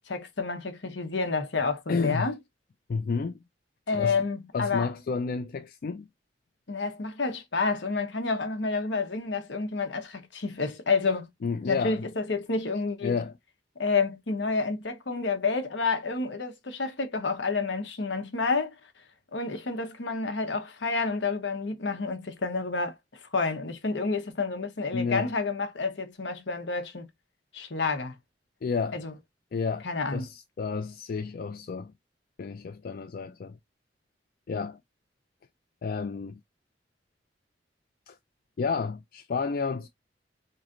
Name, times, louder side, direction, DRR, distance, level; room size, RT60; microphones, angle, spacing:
voice 1, 0.0-2.4 3.9-4.9 6.7-11.3 11.7-13.2 13.8-18.7 19.3-23.0 23.3-27.1 27.5-28.1 28.9-29.1 29.8-30.2, left 4 dB, 80° left, 1.0 m, -29 dB
voice 2, 1.9-2.3 2.9-3.4 3.9-4.2 4.5-6.1 11.4-12.0 13.0-13.4 24.9-25.3 28.6-29.0 29.5-29.8 30.1-31.9 32.4-33.6 34.5-34.8 35.8-36.3 38.1-38.2 38.6-39.9, left 5 dB, 50° left, 0.3 m, -31 dB
4.0 x 3.1 x 2.5 m
head